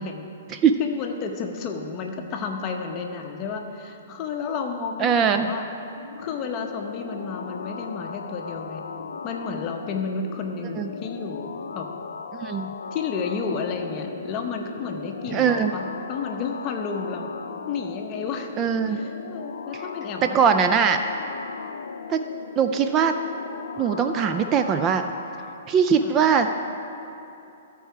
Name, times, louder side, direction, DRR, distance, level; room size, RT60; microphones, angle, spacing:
voice 1, 0.0-5.7 6.2-8.8 9.2-11.9 12.9-17.3 17.7-18.5 18.9-20.4 26.0-26.1, left 5 dB, 30° left, 3 dB, 0.8 m, -32 dB
voice 2, 5.0-5.5 10.8-10.9 12.4-12.7 15.3-15.7 18.6-19.0 20.2-21.0 22.1-22.2 22.6-23.2 23.8-25.0 25.7-26.5, right 7 dB, 25° right, 7 dB, 0.3 m, -21 dB
sound 1, 5.7-25.6, left 5 dB, 85° left, 0.5 m, -37 dB
14.0 x 4.6 x 4.6 m, 2.8 s
hypercardioid pair, 145°, 0 cm